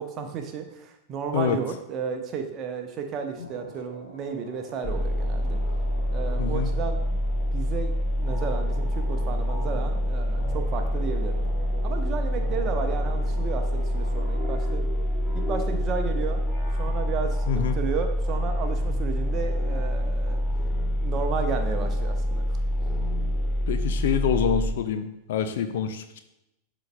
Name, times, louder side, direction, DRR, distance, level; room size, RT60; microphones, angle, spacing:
voice 1, 0.0-5.6 6.1-7.2 7.5-11.4 11.8-14.9 15.3-16.4 16.8-20.4 21.0-22.6, right 6 dB, 35° right, 5 dB, 0.9 m, -33 dB
sound 1, 3.4-14.6, left 1 dB, 85° left, 1.0 m, -47 dB
sound 2, 4.8-24.7, equal, 25° left, 1.2 m, -26 dB
voice 2, 6.4-6.7 17.5-17.7 23.7-26.2, left 8 dB, 55° left, 9 dB, 0.5 m, -26 dB
sound 3, 10.8-18.2, right 3 dB, 50° right, 1.2 m, -47 dB
12.0 x 4.0 x 2.2 m, 0.87 s
figure-of-eight pair, 90°, 0 cm